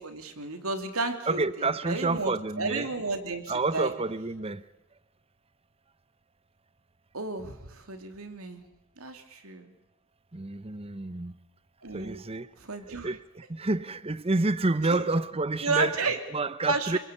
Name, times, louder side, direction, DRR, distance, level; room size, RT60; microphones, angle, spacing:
voice 1, 0.0-3.9 7.1-8.6 9.0-9.7 11.8-12.2 12.6-13.1 14.8-15.0 15.6-16.2 16.7-17.0, right 3 dB, 85° right, 3.2 m, -32 dB
voice 2, 1.3-2.9 3.5-4.6 10.3-11.3 11.9-12.5 13.0-16.0 16.3-17.0, right 3 dB, 30° right, 0.9 m, -29 dB
27.5 x 21.5 x 8.4 m
head